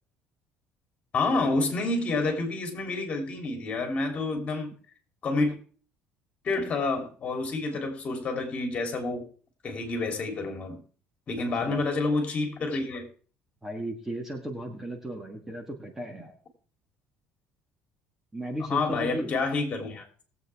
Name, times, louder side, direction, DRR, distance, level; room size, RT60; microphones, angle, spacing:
voice 1, 1.1-4.7 5.2-5.6 6.4-9.2 9.6-10.8 11.3-13.1 18.7-20.2, left 3 dB, 35° left, 3.1 m, -28 dB
voice 2, 13.6-16.3 18.3-19.3, right 1 dB, 10° right, 1.6 m, -35 dB
20.0 x 8.0 x 3.5 m
cardioid pair, 135°, 4 cm